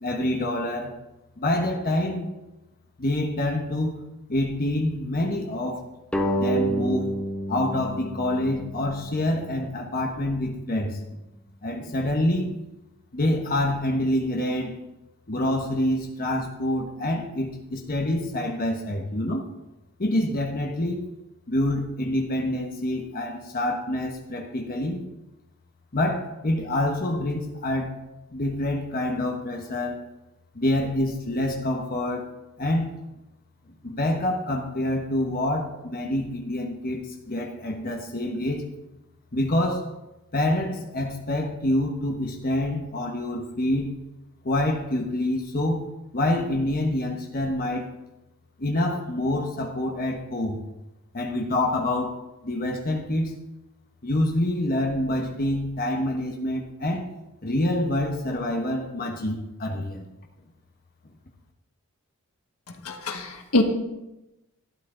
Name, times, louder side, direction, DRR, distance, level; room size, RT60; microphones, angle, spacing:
voice 1, 0.0-0.9 1.4-2.3 3.0-4.0 4.3-5.8 6.4-7.1 7.5-11.2 11.6-12.6 13.1-14.8 15.3-19.5 20.0-21.0 21.5-25.0 25.9-28.0 28.3-30.0 30.5-32.3 32.6-32.9 33.8-38.7 39.3-39.9 40.3-44.0 44.4-45.9 46.1-47.9 48.6-50.6 51.1-52.1 52.4-53.4 54.0-57.1 57.4-60.0, left 1 dB, 40° left, 1 dB, 1.2 m, -26 dB
sound 1, 6.1-9.3, right 1 dB, 5° left, 0.9 m, -28 dB
voice 2, 62.8-63.6, left 2 dB, 75° left, 4 dB, 1.5 m, -24 dB
12.5 x 10.5 x 3.9 m, 0.97 s
head